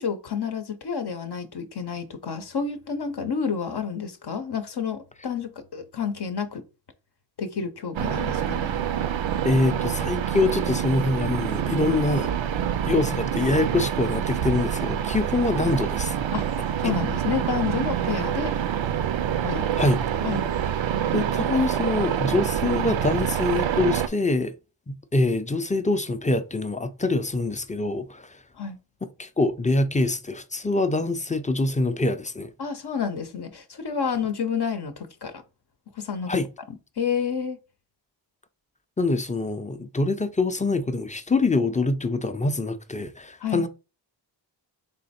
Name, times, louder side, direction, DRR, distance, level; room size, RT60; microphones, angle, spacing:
voice 1, 0.0-6.6 7.4-8.7 15.6-15.7 16.3-16.4 16.8-18.5 19.4-19.7 20.2-20.5 28.6-28.8 32.6-35.3 36.0-36.4 37.0-37.6 43.4-43.6, left 6 dB, 55° left, 0.7 m, -29 dB
sound 1, 7.9-24.1, right 9 dB, 75° right, 0.5 m, -26 dB
voice 2, 9.4-12.3 12.8-16.1 16.8-16.9 19.8-20.0 21.1-24.5 24.9-28.4 29.2-32.5 36.3-36.5 39.0-43.7, left 2 dB, 15° left, 0.5 m, -25 dB
3.9 x 3.1 x 4.2 m
cardioid pair, 55°, 46 cm